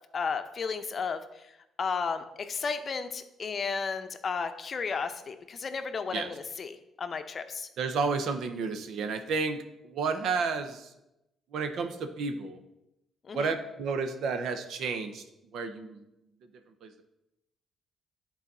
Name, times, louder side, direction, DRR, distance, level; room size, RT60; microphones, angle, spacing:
voice 1, 0.1-1.2 1.8-7.7 13.3-13.5, left 5 dB, 45° left, 9 dB, 0.6 m, -33 dB
voice 2, 7.8-10.9 11.5-12.6 13.3-15.2 15.5-16.0 16.8-16.9, right 4 dB, 75° right, 8 dB, 0.8 m, -31 dB
10.5 x 4.1 x 4.1 m, 0.90 s
cardioid pair, 90°, 0 cm